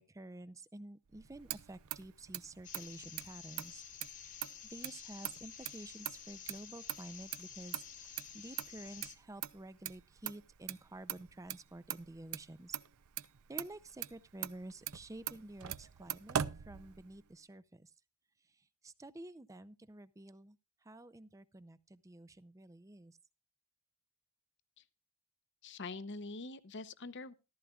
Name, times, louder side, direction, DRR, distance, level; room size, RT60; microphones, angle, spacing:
voice 1, 0.0-3.8 4.6-12.8 13.5-16.4 16.7-17.9 18.5-20.6 20.8-23.2, right 1 dB, 15° right, 0.5 m, -50 dB
Motor vehicle (road), 1.1-17.3, right 10 dB, 70° right, 0.6 m, -43 dB
sound 1, 2.6-9.2, left 8 dB, 35° left, 1.2 m, -51 dB
voice 2, 25.6-27.3, left 3 dB, 55° left, 0.8 m, -44 dB
14.5 x 13.5 x 2.4 m
head